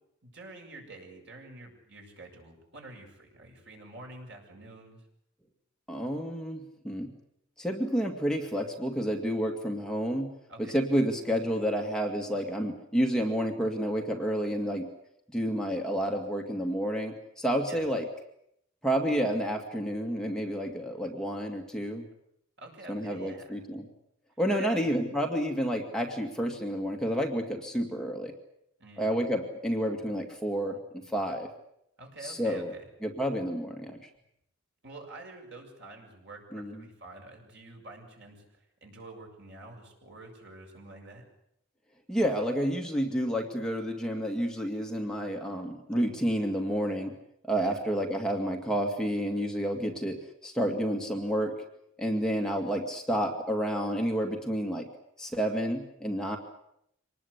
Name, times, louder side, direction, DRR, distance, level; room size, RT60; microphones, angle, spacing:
voice 1, 0.2-5.0 10.5-10.8 17.7-17.9 22.6-23.6 24.6-24.8 28.8-29.2 32.0-32.8 34.8-41.2 47.6-47.8, right 2 dB, 60° right, 1 dB, 7.4 m, -48 dB
voice 2, 5.9-7.1 7.6-10.3 10.6-14.9 15.3-18.0 18.8-22.0 22.9-23.8 24.4-28.3 29.0-31.5 32.2-32.7 33.0-34.0 36.5-36.8 42.1-47.1 47.5-51.5 52.0-54.9 55.2-56.4, equal, 5° left, 1 dB, 2.2 m, -30 dB
25.5 x 20.0 x 8.5 m, 0.75 s
head